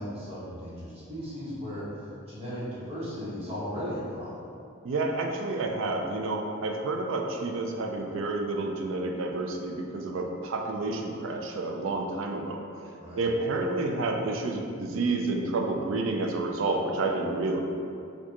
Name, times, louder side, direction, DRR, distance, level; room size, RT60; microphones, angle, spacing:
voice 1, 0.0-4.5 13.0-13.2, equal, 30° right, -10 dB, 1.1 m, -36 dB
voice 2, 4.8-12.6 13.2-17.6, right 2 dB, 65° right, 2 dB, 0.4 m, -29 dB
4.6 x 2.3 x 2.8 m, 2.5 s
head